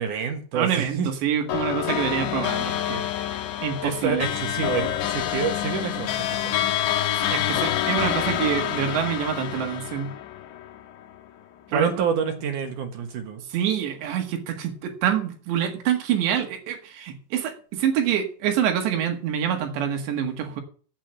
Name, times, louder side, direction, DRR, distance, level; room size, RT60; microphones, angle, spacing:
voice 1, 0.0-1.1 3.8-6.1 6.4-6.6 11.7-13.4, right 6 dB, 60° right, 5 dB, 2.4 m, -27 dB
voice 2, 0.6-3.1 3.6-4.3 7.3-10.1 11.7-12.0 13.5-20.6, right 9 dB, 75° right, 5 dB, 3.8 m, -26 dB
sound 1, 1.5-11.1, left 11 dB, 75° left, 3.3 m, -27 dB
8.9 x 8.3 x 7.7 m, 0.42 s
omnidirectional pair, 5.2 m